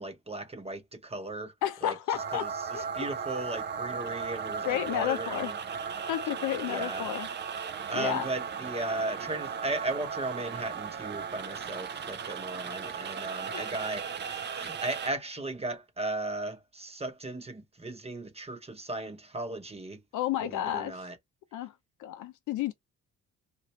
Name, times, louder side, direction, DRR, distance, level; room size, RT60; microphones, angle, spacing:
voice 1, 0.0-1.5 1.8-1.9 2.3-5.6 6.7-7.1 7.9-20.0 20.4-21.2, right 2 dB, 20° right, 0.9 m, -36 dB
voice 2, 1.6-2.5 2.7-2.9 4.6-5.5 6.1-7.3 7.9-8.3 13.5-13.7 20.1-21.0 21.5-21.7 22.0-22.7, left 12 dB, 85° left, 0.6 m, -31 dB
sound 1, 2.1-15.1, right 6 dB, 35° right, 0.4 m, -36 dB
3.0 x 2.5 x 3.0 m
cardioid pair, 90°, 30 cm